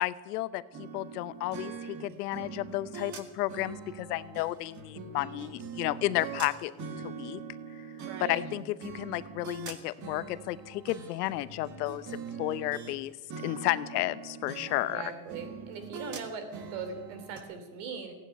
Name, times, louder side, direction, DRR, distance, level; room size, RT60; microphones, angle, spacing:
voice 1, 0.0-6.7 7.0-7.4 7.7-7.8 8.3-13.1 13.4-15.0, left 16 dB, 85° left, 15 dB, 0.9 m, -32 dB
sound 1, 0.7-13.0 13.3-17.4, right 6 dB, 40° right, 1.9 m, -43 dB
voice 2, 8.0-8.4 14.8-18.1, right 5 dB, 70° right, 8 dB, 3.4 m, -40 dB
16.0 x 9.5 x 9.2 m, 1.3 s
supercardioid pair, 125°, 46 cm